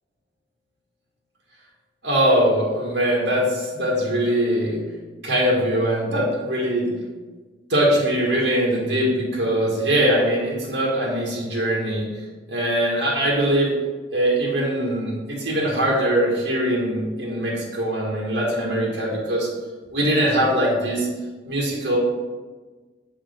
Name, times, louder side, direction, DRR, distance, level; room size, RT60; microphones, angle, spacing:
voice 1, 2.0-4.8 5.2-6.9 7.7-12.1 12.5-13.7 14.1-19.5 19.9-21.1 21.4-22.0, right 1 dB, 80° right, -4 dB, 1.9 m, -22 dB
7.2 x 3.8 x 5.2 m, 1.3 s
head